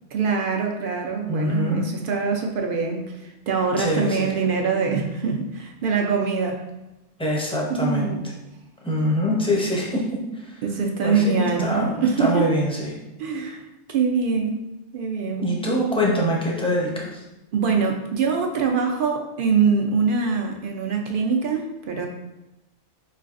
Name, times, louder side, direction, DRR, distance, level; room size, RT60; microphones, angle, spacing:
voice 1, 0.1-6.6 7.8-8.3 10.6-12.5 13.2-14.6 14.9-15.5 17.5-22.1, right 5 dB, 60° right, 2 dB, 0.6 m, -24 dB
voice 2, 1.3-1.9 3.8-4.3 7.2-8.2 8.8-10.6 11.0-13.0 15.4-17.2, equal, 5° left, -4 dB, 0.6 m, -24 dB
4.7 x 3.2 x 2.4 m, 0.95 s
omnidirectional pair, 1.2 m